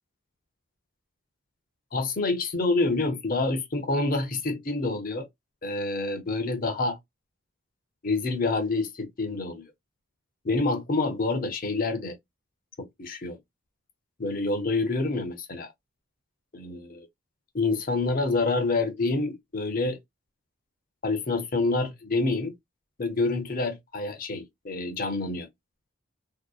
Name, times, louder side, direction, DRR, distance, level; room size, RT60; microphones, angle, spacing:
voice 1, 1.9-5.3 5.6-7.0 8.0-9.7 10.4-12.2 12.8-13.4 14.2-15.7 16.5-17.0 17.5-20.0 21.0-22.5 23.0-25.5, left 3 dB, 40° left, 0.6 m, -27 dB
2.6 x 2.1 x 2.3 m
head